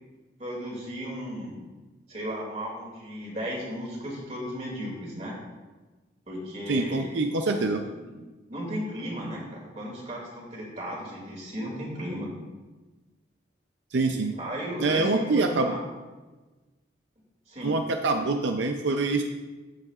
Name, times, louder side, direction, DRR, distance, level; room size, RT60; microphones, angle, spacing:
voice 1, 0.4-1.6 2.1-5.4 6.3-7.5 8.0-8.1 8.5-12.3 14.4-15.8 17.5-17.7, equal, 35° right, -2 dB, 2.4 m, -35 dB
voice 2, 6.7-7.8 13.9-14.3 14.8-15.8 17.6-19.2, right 3 dB, 75° right, 5 dB, 0.5 m, -25 dB
14.0 x 7.5 x 2.4 m, 1.2 s
head